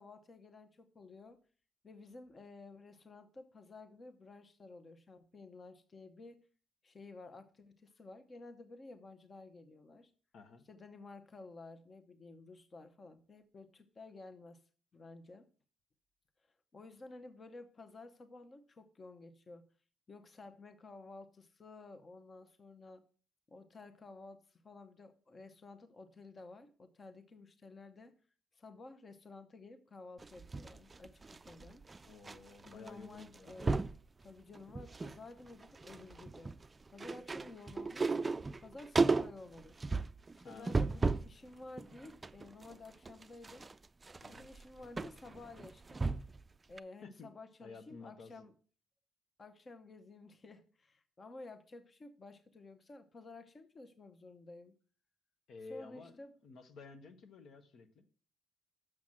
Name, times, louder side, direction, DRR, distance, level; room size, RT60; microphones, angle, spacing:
voice 1, 0.0-1.4 1.8-6.5 6.8-10.1 10.7-14.6 14.9-15.5 16.7-19.7 20.1-23.0 23.5-28.2 28.5-31.8 32.6-33.9 34.2-36.6 36.9-38.2 38.6-39.8 40.3-43.7 44.3-46.0 46.7-48.5 49.4-54.7 55.7-56.3, left 3 dB, 35° left, 8 dB, 0.9 m, -53 dB
voice 2, 10.3-10.6 32.0-33.6 40.4-40.9 44.2-44.5 47.0-47.3 47.6-48.5 55.5-58.1, left 4 dB, 70° left, 7 dB, 1.1 m, -52 dB
sound 1, 30.2-32.4 32.6-32.9 33.2-34.0 34.5-35.2 35.5-41.4 41.8-46.4 46.8-46.9, right 3 dB, 25° right, 0.3 m, -35 dB
6.4 x 6.0 x 7.3 m, 0.42 s
cardioid pair, 90°, 0 cm